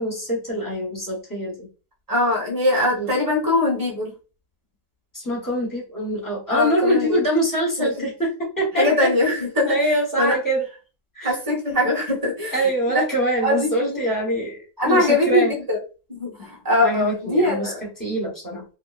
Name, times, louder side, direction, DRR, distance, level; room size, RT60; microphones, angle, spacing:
voice 1, 0.0-1.7 2.9-3.1 5.1-9.1 9.7-10.6 11.1-11.4 12.5-15.5 16.8-18.6, right 1 dB, 15° left, -3 dB, 0.8 m, -24 dB
voice 2, 2.1-4.1 6.5-7.2 7.8-8.1 8.8-9.8 10.2-10.4 11.2-13.0 13.4-14.0 14.8-15.8 16.1-17.8, left 1 dB, 15° right, -2 dB, 1.0 m, -22 dB
2.9 x 2.5 x 2.4 m, 0.33 s
omnidirectional pair, 1.9 m